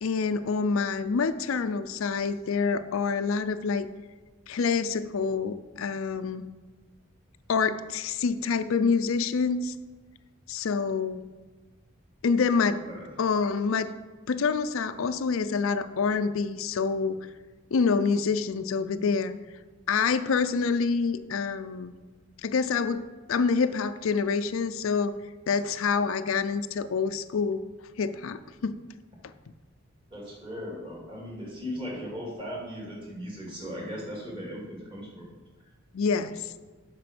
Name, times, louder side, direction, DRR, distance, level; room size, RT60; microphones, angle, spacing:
voice 1, 0.0-3.9 4.5-6.5 7.5-9.7 10.5-11.2 12.2-12.8 13.2-13.9 14.3-17.2 17.7-19.3 19.9-21.9 22.4-23.0 23.3-25.2 25.5-27.6 28.0-28.8 29.2-29.3 35.9-36.5, left 5 dB, 80° left, 11 dB, 0.4 m, -27 dB
voice 2, 30.1-35.3 36.1-36.3, equal, 25° right, -3 dB, 2.3 m, -38 dB
7.6 x 5.8 x 6.0 m, 1.3 s
head